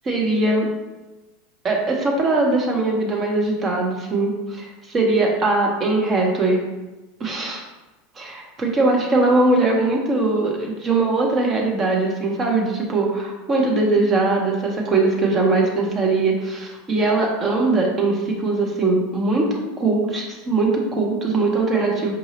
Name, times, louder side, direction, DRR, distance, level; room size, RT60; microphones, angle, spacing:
voice 1, 0.0-0.7 1.6-6.6 7.2-7.6 8.2-19.5 19.8-22.2, right 3 dB, 30° right, -1 dB, 0.8 m, -21 dB
4.8 x 2.6 x 2.9 m, 1.1 s
hypercardioid pair, 80°, 0 cm